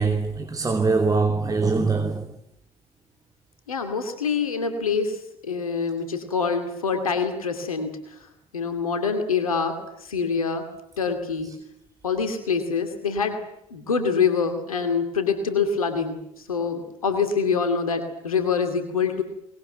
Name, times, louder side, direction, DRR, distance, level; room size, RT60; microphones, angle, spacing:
voice 1, 0.0-2.3, right 4 dB, 20° right, 2.9 m, -23 dB
voice 2, 3.7-8.2 8.5-10.7 11.0-11.6 12.0-13.4 13.7-19.2, left 5 dB, 90° left, 2.5 m, -25 dB
23.0 x 21.0 x 9.1 m
hypercardioid pair, 60°, 18 cm